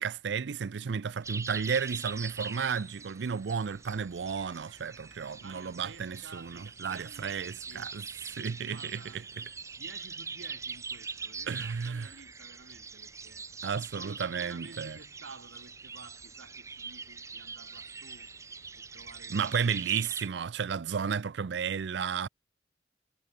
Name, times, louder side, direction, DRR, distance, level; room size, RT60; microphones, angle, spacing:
voice 1, 0.0-8.1 8.3-9.5 11.5-12.1 13.6-15.0 19.3-22.3, right 6 dB, 65° right, 0.5 m, -33 dB
sound 1, 1.2-20.3, right 4 dB, 15° right, 0.5 m, -43 dB
voice 2, 5.4-7.9 8.7-9.3 9.8-13.4 13.8-18.3 18.8-20.0, right 4 dB, 85° right, 1.6 m, -52 dB
head